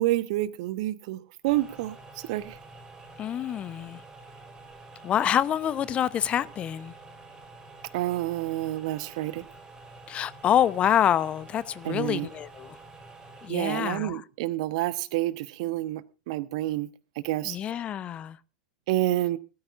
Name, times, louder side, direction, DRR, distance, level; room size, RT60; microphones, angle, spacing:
voice 1, 0.0-2.6 7.9-9.5 11.8-12.3 13.5-16.9 17.1-17.6 18.9-19.4, right 16 dB, 55° right, 1.2 m, -29 dB
sound 1, 1.4-13.5, right 3 dB, 15° right, 5.1 m, -48 dB
voice 2, 3.2-4.0 5.0-6.9 10.1-12.8 13.4-14.2 17.4-18.4, left 10 dB, 30° left, 0.9 m, -26 dB
20.5 x 14.0 x 2.6 m
figure-of-eight pair, 85°, 4 cm